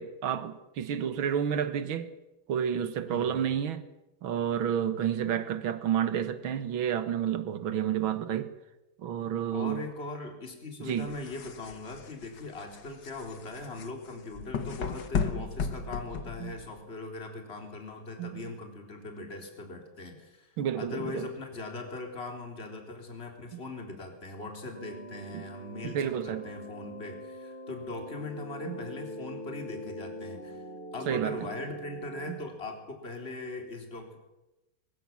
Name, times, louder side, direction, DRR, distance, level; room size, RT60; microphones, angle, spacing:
voice 1, 0.0-2.1 2.5-3.8 4.2-8.5 9.0-9.9 10.8-11.1 16.4-16.6 18.2-18.5 20.6-21.3 23.5-23.6 25.3-25.4 25.8-26.5 28.7-28.9 31.1-31.4 32.3-32.4, right 9 dB, 75° right, 11 dB, 2.2 m, -30 dB
voice 2, 3.1-3.6 9.5-30.7 30.9-34.2, left 2 dB, 30° left, 3 dB, 4.0 m, -40 dB
sound 1, 10.9-16.8, left 6 dB, 55° left, 1.9 m, -35 dB
sound 2, 24.7-32.3, equal, 15° right, 5.6 m, -43 dB
23.0 x 21.5 x 7.4 m, 0.98 s
omnidirectional pair, 2.3 m